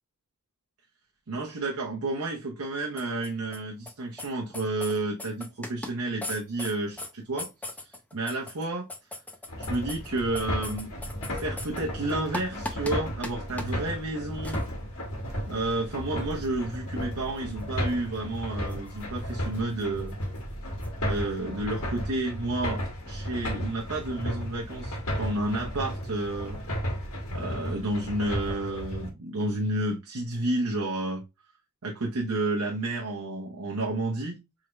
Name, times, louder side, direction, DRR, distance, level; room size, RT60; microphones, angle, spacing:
voice 1, 1.3-8.9 9.6-10.9 11.3-14.6 15.5-20.2 21.0-26.6 27.3-31.2 31.8-34.4, right 2 dB, 75° right, 0.9 m, -31 dB
sound 1, 3.0-3.6 3.9-4.0 4.2-4.3 4.5-5.9 6.2-7.1 7.4-11.8 12.1-12.9 13.2-13.3 13.6-13.7 14.4-14.6 16.4-16.5 18.7-19.0 19.8-19.9 20.1-20.2 20.8-20.9, left 2 dB, 5° left, 0.7 m, -37 dB
sound 2, 9.5-29.1, equal, 65° left, 1.7 m, -34 dB
4.8 x 3.7 x 2.2 m
head